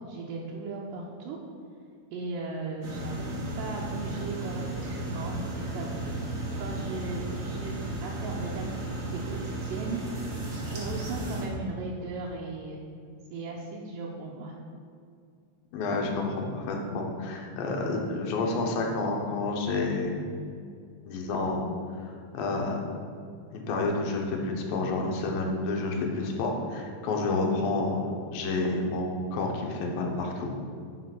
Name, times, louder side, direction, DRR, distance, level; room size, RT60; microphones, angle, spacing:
voice 1, 0.0-1.4 2.1-5.4 5.7-7.7 8.0-10.0 10.6-12.8 13.3-14.6, right 3 dB, 80° right, -4 dB, 2.4 m, -37 dB
sound 1, 2.8-11.5, right 2 dB, 50° right, 1.3 m, -34 dB
voice 2, 15.7-20.2 21.1-21.7 22.0-22.8 23.5-30.5, left 3 dB, 80° left, 1 dB, 2.8 m, -29 dB
8.3 x 5.1 x 6.0 m, 2.3 s
omnidirectional pair, 4.1 m